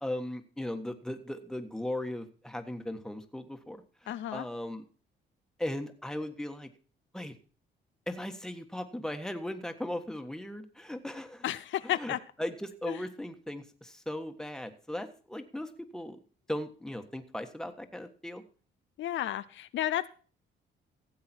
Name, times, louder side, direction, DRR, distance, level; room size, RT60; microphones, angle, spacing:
voice 1, 0.0-4.9 5.6-6.7 7.1-7.3 8.1-11.4 11.8-16.2 16.5-18.4, left 1 dB, 5° left, 7 dB, 1.4 m, -38 dB
voice 2, 4.1-4.5 11.4-12.2 12.9-13.0 19.0-20.1, left 12 dB, 70° left, 13 dB, 0.6 m, -32 dB
15.5 x 7.7 x 4.4 m, 0.39 s
cardioid pair, 90°, 20 cm